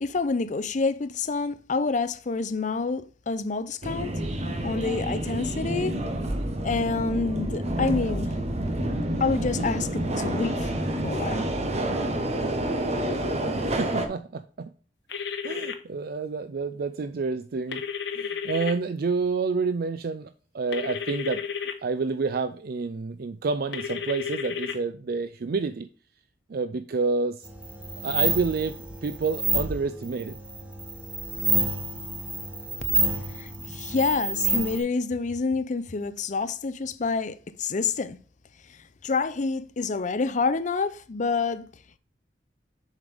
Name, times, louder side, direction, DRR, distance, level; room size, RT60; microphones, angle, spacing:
voice 1, 0.0-4.1 4.6-5.9 6.6-8.4 9.2-10.7 11.0-11.5 33.3-38.2 39.0-41.7, left 4 dB, 45° left, 0.5 m, -28 dB
Subway metro underground, 3.8-14.1, right 1 dB, 40° right, 1.1 m, -28 dB
voice 2, 13.6-14.7 15.4-17.8 18.1-21.4 21.8-25.9 26.5-27.5 28.0-30.4, right 4 dB, 55° right, 0.4 m, -29 dB
sound 1, 15.1-15.7 17.7-18.7 20.7-21.7 23.7-24.7, left 6 dB, 75° left, 1.0 m, -32 dB
sound 2, 27.4-34.8, right 2 dB, 10° right, 1.4 m, -28 dB
7.3 x 5.2 x 3.4 m
head